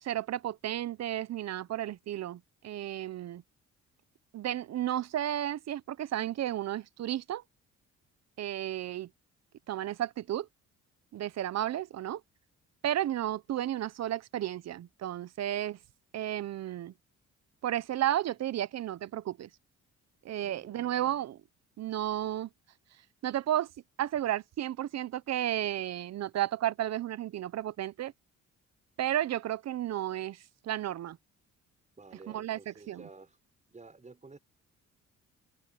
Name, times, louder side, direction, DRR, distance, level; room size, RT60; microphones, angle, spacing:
voice 1, 0.0-3.4 4.3-7.4 8.4-9.1 9.7-10.5 11.1-12.2 12.8-15.8 16.1-16.9 17.6-19.5 20.2-21.4 21.8-22.5 23.2-23.7 24.0-28.1 29.0-31.2 32.3-33.0, right 12 dB, 60° right, 0.8 m, -33 dB
voice 2, 20.4-21.2 32.0-33.4 33.7-34.4, right 3 dB, 25° right, 6.6 m, -52 dB
cardioid pair, 90°, 30 cm